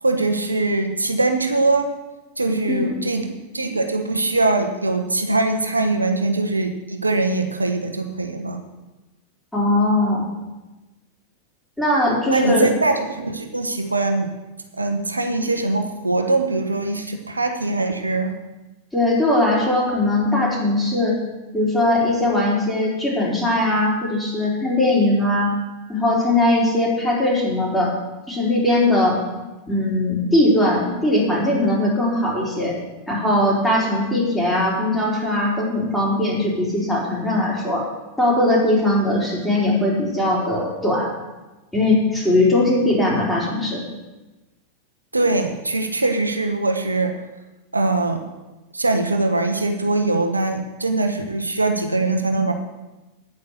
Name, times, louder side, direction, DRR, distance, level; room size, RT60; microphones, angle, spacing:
voice 1, 0.0-1.9 2.4-3.2 3.5-8.6 12.3-14.3 14.8-18.3 45.1-47.1 47.7-48.2 48.7-52.5, right 2 dB, 80° right, 5 dB, 1.1 m, -22 dB
voice 2, 9.5-10.2 11.8-12.7 18.9-21.2 21.5-25.5 25.9-27.9 28.3-29.2 29.7-32.8 33.1-37.8 38.2-41.1 41.7-43.8, left 1 dB, 5° left, -4 dB, 4.5 m, -20 dB
9.8 x 9.5 x 6.7 m, 1.1 s
figure-of-eight pair, 90°, 0 cm